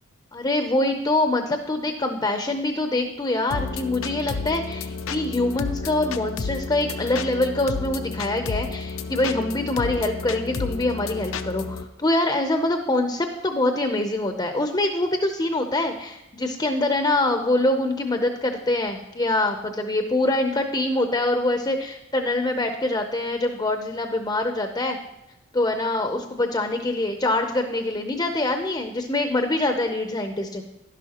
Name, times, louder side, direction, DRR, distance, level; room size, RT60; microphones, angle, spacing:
voice 1, 0.3-25.0 25.5-30.6, left 2 dB, 20° left, 6 dB, 0.6 m, -24 dB
sound 1, 3.5-11.8, left 4 dB, 75° left, 0.5 m, -31 dB
11.0 x 11.0 x 2.9 m, 0.93 s
head